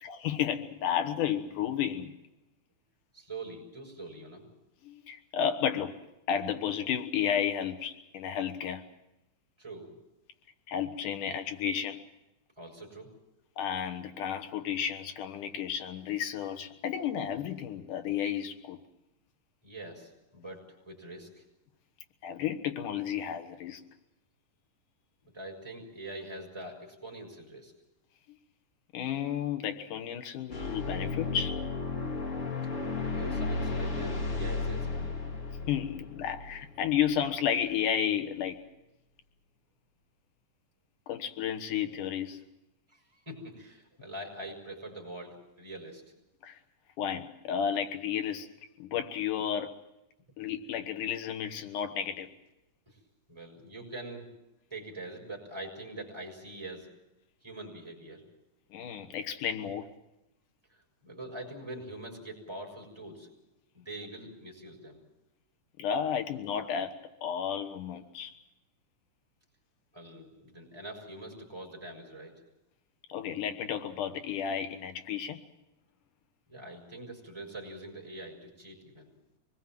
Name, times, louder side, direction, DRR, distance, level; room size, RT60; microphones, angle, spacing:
voice 1, 0.0-2.1 4.8-6.0 6.3-8.8 10.7-12.0 13.6-18.8 22.2-23.8 28.9-31.6 35.7-38.6 41.1-42.4 46.4-46.6 47.0-48.5 48.8-49.7 50.4-52.3 58.7-59.9 65.8-66.9 67.2-68.3 73.1-75.4, left 9 dB, 90° left, 8 dB, 2.8 m, -32 dB
voice 2, 3.1-4.4 9.6-9.9 12.6-13.1 19.6-21.4 25.2-27.7 33.0-35.1 42.9-46.1 52.9-53.0 53.3-54.3 54.7-56.9 57.4-58.2 60.7-63.3 63.7-65.0 69.9-72.4 76.5-79.1, right 2 dB, 10° right, -1 dB, 6.3 m, -44 dB
sound 1, 30.5-37.2, left 3 dB, 30° left, 1.6 m, -34 dB
25.0 x 21.0 x 7.6 m, 0.90 s
omnidirectional pair, 3.5 m